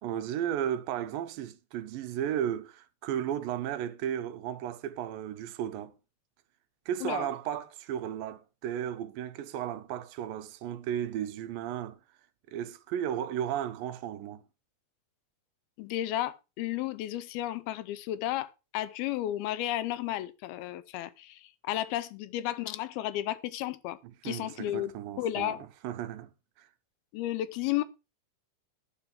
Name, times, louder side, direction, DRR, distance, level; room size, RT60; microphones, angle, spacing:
voice 1, 0.0-5.9 6.9-12.0 12.5-14.4 24.0-26.3 26.6-26.7, right 10 dB, 75° right, 2.4 m, -34 dB
voice 2, 15.8-24.0 24.2-24.9 25.2-25.6 27.1-27.8, left 13 dB, 90° left, 2.7 m, -33 dB
11.5 x 4.5 x 7.4 m
omnidirectional pair, 4.3 m